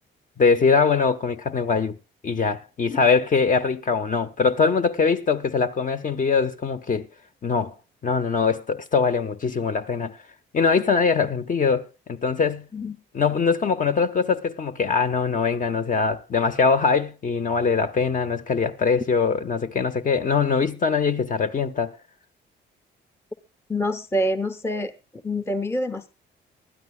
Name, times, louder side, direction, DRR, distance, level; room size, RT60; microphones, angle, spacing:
voice 1, 0.4-2.0 2.2-7.1 7.4-7.7 8.0-10.2 10.5-12.6 13.1-22.0, left 5 dB, 40° left, 1.0 m, -22 dB
voice 2, 23.7-24.9 25.2-26.1, left 1 dB, 15° left, 0.8 m, -26 dB
24.5 x 12.5 x 2.2 m
cardioid pair, 90°, 20 cm